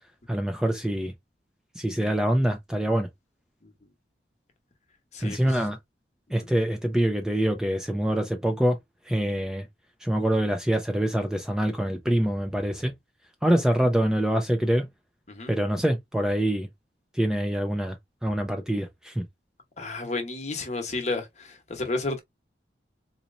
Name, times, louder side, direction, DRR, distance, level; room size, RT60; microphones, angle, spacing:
voice 1, 0.3-1.1 1.7-3.1 5.2-5.8 6.3-8.8 9.0-9.7 10.0-12.9 13.4-14.9 15.5-16.7 17.1-18.0 18.2-19.2, right 1 dB, 5° right, 0.4 m, -25 dB
voice 2, 19.8-22.2, left 2 dB, 40° left, 1.0 m, -31 dB
4.1 x 2.9 x 2.5 m
head